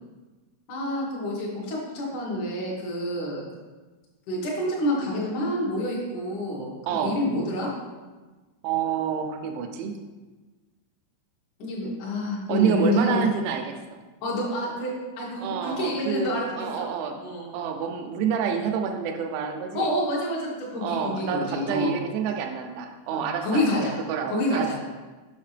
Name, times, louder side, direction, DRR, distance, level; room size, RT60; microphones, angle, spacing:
voice 1, 0.7-3.5 4.3-6.7 7.0-7.7 11.6-13.2 14.2-16.5 16.8-16.9 17.2-17.5 19.7-21.9 23.1-24.0 24.3-24.8, left 1 dB, 60° left, -5 dB, 2.2 m, -28 dB
voice 2, 6.9-7.2 8.6-10.0 12.5-13.8 15.4-17.2 17.5-19.9 20.8-24.8, right 7 dB, 85° right, 4 dB, 2.7 m, -28 dB
7.3 x 6.3 x 3.3 m, 1.3 s
omnidirectional pair, 5.7 m